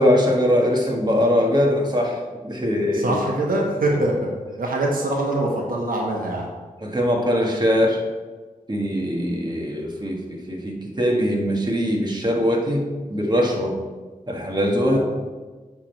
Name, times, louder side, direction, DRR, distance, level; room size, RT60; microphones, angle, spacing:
voice 1, 0.0-3.2 6.8-8.0 8.7-13.8 14.3-15.0, equal, 30° right, 0 dB, 1.4 m, -21 dB
voice 2, 2.9-4.2 4.6-6.5 14.9-15.0, right 1 dB, 80° right, -2 dB, 1.3 m, -23 dB
8.7 x 3.6 x 4.5 m, 1.3 s
cardioid pair, 55°, 14 cm